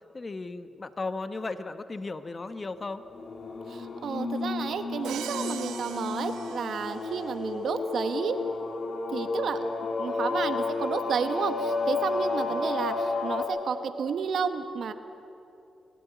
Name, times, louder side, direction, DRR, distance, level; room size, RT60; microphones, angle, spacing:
voice 1, 0.1-3.0, left 3 dB, 40° left, 10 dB, 1.0 m, -35 dB
sound 1, 3.1-13.4, left 3 dB, 55° left, 2.4 m, -31 dB
voice 2, 3.7-8.4 9.1-9.6 10.0-14.9, right 6 dB, 70° right, 9 dB, 1.1 m, -31 dB
Crash cymbal, 5.0-7.3, right 9 dB, 90° right, 0.8 m, -40 dB
24.0 x 12.0 x 9.4 m, 2.7 s
supercardioid pair, 50°, 0 cm